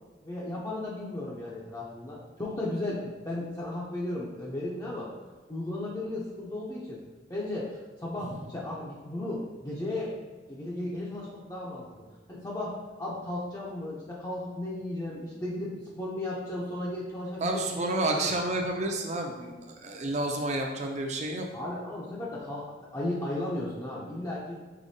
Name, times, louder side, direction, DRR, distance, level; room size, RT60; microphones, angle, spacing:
voice 1, 0.2-5.1 5.5-7.0 7.3-10.1 10.5-11.8 12.3-18.3 21.5-24.6, left 1 dB, 20° left, -6 dB, 0.5 m, -35 dB
voice 2, 17.4-21.5, right 2 dB, 40° right, 3 dB, 0.5 m, -30 dB
4.9 x 3.7 x 2.7 m, 1.3 s
head